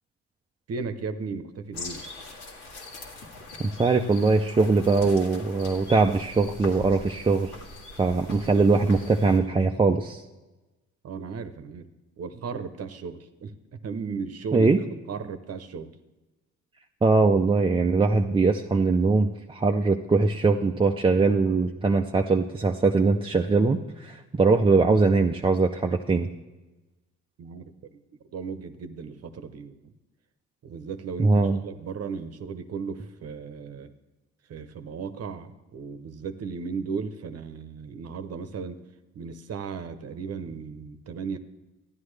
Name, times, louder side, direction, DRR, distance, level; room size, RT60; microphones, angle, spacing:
voice 1, 0.7-2.0 11.0-11.9 12.2-14.8 15.1-15.9 27.4-28.0 28.3-29.9 30.6-33.9 34.5-38.8 39.1-41.4, right 5 dB, 55° right, 10 dB, 0.8 m, -36 dB
sound 1, 1.7-9.4, left 2 dB, 80° left, 1.9 m, -42 dB
voice 2, 3.6-7.6 8.0-10.2 14.5-14.8 17.0-26.3 31.2-31.6, right 3 dB, 20° right, 2 dB, 0.4 m, -21 dB
13.0 x 10.5 x 3.2 m, 1.1 s
cardioid pair, 90°, 30 cm